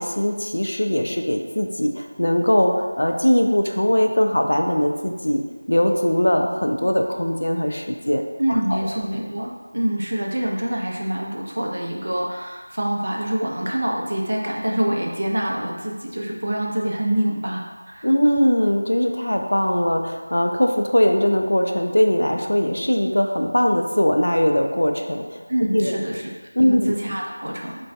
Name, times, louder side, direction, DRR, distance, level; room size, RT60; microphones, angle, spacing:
voice 1, 0.0-5.4 5.7-8.2 8.7-8.8 18.0-25.4 25.7-25.9 26.6-26.9, equal, 80° left, 3 dB, 0.4 m, -20 dB
voice 2, 8.4-18.1 25.5-26.3 26.6-27.8, right 1 dB, 50° right, -1 dB, 0.5 m, -25 dB
4.6 x 2.6 x 2.2 m, 1.4 s
figure-of-eight pair, 180°, 0 cm